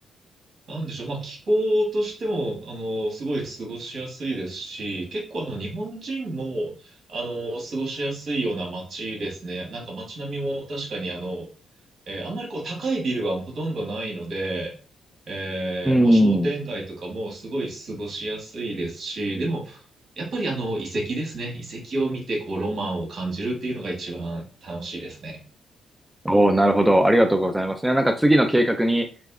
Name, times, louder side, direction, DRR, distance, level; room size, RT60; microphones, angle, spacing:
voice 1, 0.7-11.5 12.1-14.7 15.3-19.8 20.2-25.4, right 1 dB, 55° right, -1 dB, 1.9 m, -29 dB
voice 2, 15.9-16.5 26.2-29.1, right 1 dB, 10° right, 7 dB, 0.5 m, -18 dB
3.4 x 3.0 x 3.7 m, 0.37 s
cardioid pair, 85°, 0 cm